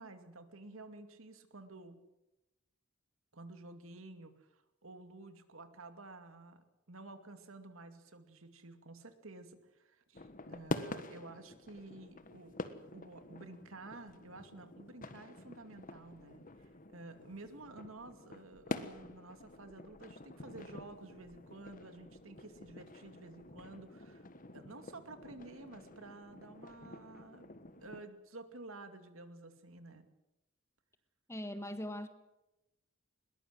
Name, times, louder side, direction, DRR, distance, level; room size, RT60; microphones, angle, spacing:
voice 1, 0.0-2.0 3.3-12.6 12.9-24.3 24.5-27.5 27.8-30.0, right 2 dB, 75° right, 8 dB, 2.4 m, -52 dB
sound 1, 10.1-28.0, left 2 dB, 40° left, 1.4 m, -47 dB
voice 2, 31.3-32.1, left 1 dB, 15° left, 9 dB, 1.4 m, -40 dB
21.0 x 20.5 x 7.8 m, 0.93 s
head